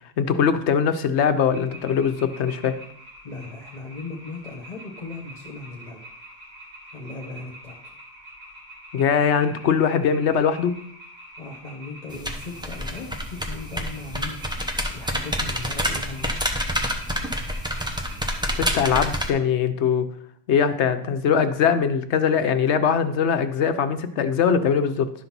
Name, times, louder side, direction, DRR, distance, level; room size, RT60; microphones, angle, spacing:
voice 1, 0.2-2.8 8.9-10.8 18.5-20.1 20.5-25.1, left 7 dB, 70° left, 10 dB, 0.9 m, -21 dB
sound 1, 1.5-18.6, equal, 60° right, 2.6 m, -45 dB
voice 2, 3.2-6.0 6.9-7.8 11.4-16.6, left 3 dB, 35° left, -2 dB, 1.3 m, -38 dB
sound 2, 12.1-19.3, equal, 5° right, 0.7 m, -28 dB
11.5 x 4.0 x 5.9 m, 0.65 s
omnidirectional pair, 1.2 m